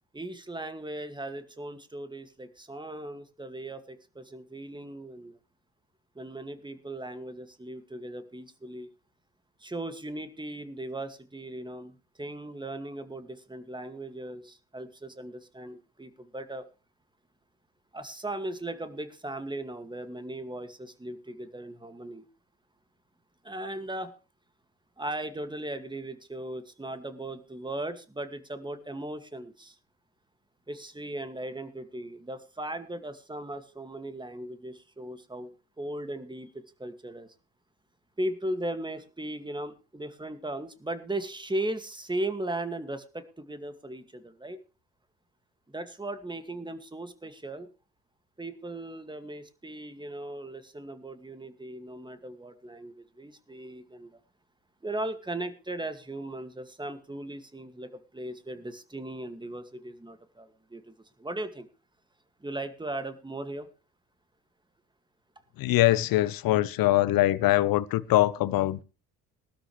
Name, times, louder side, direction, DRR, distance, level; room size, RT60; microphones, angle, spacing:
voice 1, 0.1-5.4 6.2-8.9 9.6-11.9 12.2-16.6 17.9-22.2 23.4-24.1 25.0-29.8 30.7-35.5 35.8-36.5 36.8-37.3 38.2-44.6 45.7-47.7 48.4-54.2 54.8-61.7 62.4-63.7, right 1 dB, 10° right, 2.2 m, -37 dB
voice 2, 65.6-68.8, left 15 dB, 50° left, 1.0 m, -23 dB
19.5 x 12.5 x 3.3 m
figure-of-eight pair, 50°, 44 cm